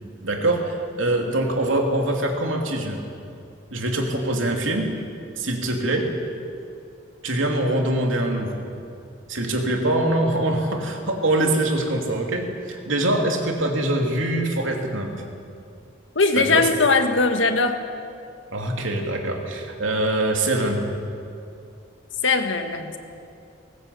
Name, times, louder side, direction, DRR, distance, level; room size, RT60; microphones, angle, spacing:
voice 1, 0.2-3.0 3.7-4.9 5.4-6.1 7.2-8.6 9.3-15.1 16.3-16.7 18.5-20.8, right 1 dB, 85° right, 2 dB, 3.0 m, -23 dB
voice 2, 16.2-17.8 22.2-23.0, left 3 dB, 75° left, 6 dB, 1.7 m, -20 dB
19.5 x 19.0 x 8.4 m, 2.5 s
head